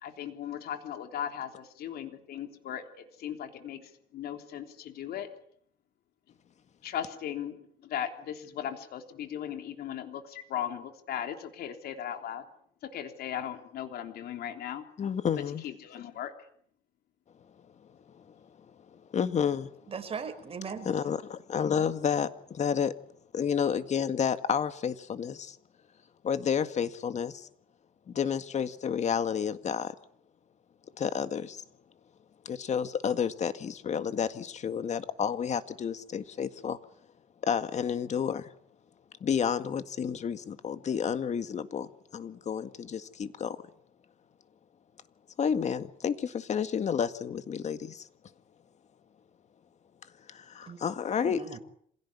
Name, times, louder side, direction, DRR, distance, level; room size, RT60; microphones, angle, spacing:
voice 1, 0.0-5.3 6.8-12.4 12.8-14.8 15.6-16.3, left 9 dB, 70° left, 3.4 m, -37 dB
voice 2, 15.0-15.6 18.1-18.2 18.9-19.7 20.9-23.0 23.3-25.6 26.2-27.5 28.1-29.9 31.0-31.6 32.5-36.8 37.4-38.5 39.2-41.9 42.1-43.6 45.4-48.1 50.3-51.4, left 7 dB, 45° left, 1.9 m, -30 dB
voice 3, 19.9-20.9 50.6-50.8 51.2-51.6, right 6 dB, 35° right, 5.3 m, -38 dB
26.5 x 17.0 x 9.7 m
cardioid pair, 110°, 17 cm